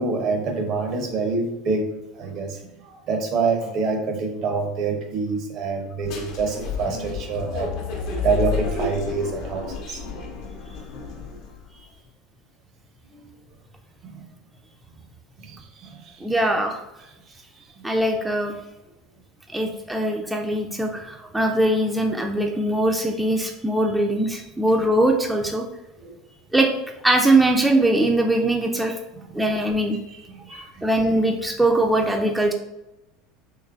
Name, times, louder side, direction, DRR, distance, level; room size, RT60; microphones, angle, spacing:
voice 1, 0.0-1.9 2.2-2.6 2.8-7.7 8.2-10.0 13.1-13.2 14.0-14.2 15.4-15.6 15.8-16.1 26.0-26.2 29.3-29.4 30.4-30.7, right 4 dB, 50° right, 4 dB, 0.6 m, -26 dB
sound 1, 6.0-11.6, left 5 dB, 55° left, 0.7 m, -31 dB
voice 2, 16.2-16.8 17.8-18.5 19.5-25.7 26.5-26.7 27.0-29.0 29.3-30.0 30.5-32.5, right 1 dB, 5° right, 2 dB, 0.4 m, -21 dB
3.2 x 3.1 x 2.3 m, 0.94 s
figure-of-eight pair, 75°, 0 cm